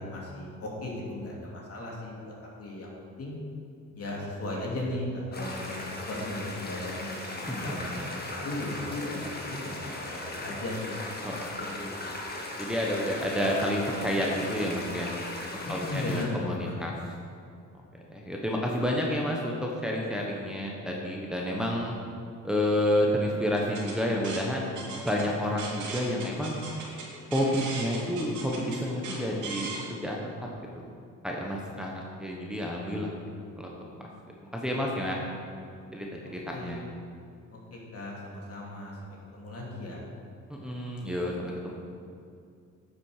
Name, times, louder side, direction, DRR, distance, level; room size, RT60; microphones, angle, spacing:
voice 1, 0.0-2.9 3.2-3.4 4.0-7.1 7.5-9.8 10.1-12.1 15.6-16.9 36.2-36.9 37.7-40.0, left 1 dB, 50° left, -3 dB, 2.7 m, -36 dB
sound 1, 5.3-16.3, left 2 dB, 30° left, 1.9 m, -38 dB
voice 2, 12.6-15.1 15.7-16.9 18.1-26.6 27.3-30.2 30.8-30.9 31.2-33.1 33.6-33.7 34.0-34.1 34.5-35.2 35.9-36.1 36.3-36.8 40.5-41.7, equal, 5° right, -2 dB, 1.3 m, -30 dB
sound 2, 23.6-29.8, right 3 dB, 75° right, 2.8 m, -39 dB
9.4 x 7.7 x 5.1 m, 2.4 s
cardioid pair, 90°, 30 cm